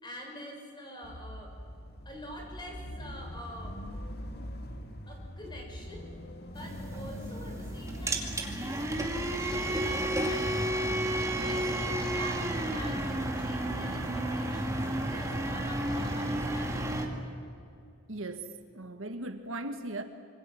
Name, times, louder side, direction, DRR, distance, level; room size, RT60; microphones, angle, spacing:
voice 1, 0.0-1.5 2.0-3.8 5.1-6.1 6.5-10.9 11.4-11.7 11.9-17.3, equal, 20° left, 0 dB, 6.3 m, -46 dB
sound 1, 1.0-10.1, equal, 50° left, 1.8 m, -42 dB
sound 2, 6.6-17.1, right 1 dB, 15° right, 2.4 m, -32 dB
voice 2, 18.1-20.0, right 2 dB, 65° right, 7 dB, 1.6 m, -38 dB
26.5 x 24.5 x 7.7 m, 2.4 s
head